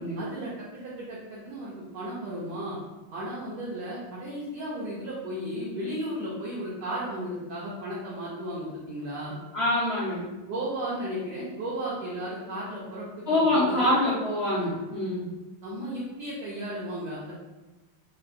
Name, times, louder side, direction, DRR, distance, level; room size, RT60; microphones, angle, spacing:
voice 1, 0.2-2.8 3.1-9.4 10.5-13.9 15.6-17.3, right 1 dB, 65° right, -7 dB, 1.1 m, -34 dB
voice 2, 9.5-10.3 13.3-15.3, left 1 dB, 50° left, -11 dB, 0.8 m, -25 dB
3.8 x 2.5 x 2.5 m, 1.1 s
omnidirectional pair, 2.3 m